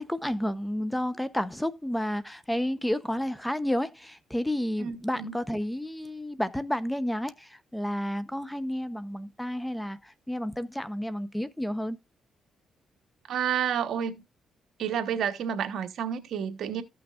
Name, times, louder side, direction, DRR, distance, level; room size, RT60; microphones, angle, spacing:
voice 1, 0.0-12.0, left 1 dB, 5° left, 0.8 m, -31 dB
voice 2, 4.8-5.3 13.3-14.2 14.8-16.8, right 8 dB, 70° right, 1.2 m, -30 dB
14.5 x 6.1 x 2.5 m
cardioid pair, 90°, 0 cm